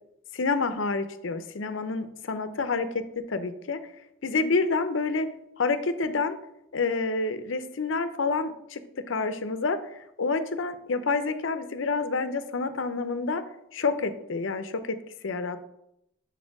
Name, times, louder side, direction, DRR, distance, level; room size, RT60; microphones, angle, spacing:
voice 1, 0.3-3.8 4.2-5.3 5.6-6.4 6.7-9.8 10.2-13.4 13.7-15.0 15.2-15.6, left 4 dB, 60° left, 10 dB, 0.6 m, -28 dB
5.4 x 4.3 x 5.9 m, 0.80 s
head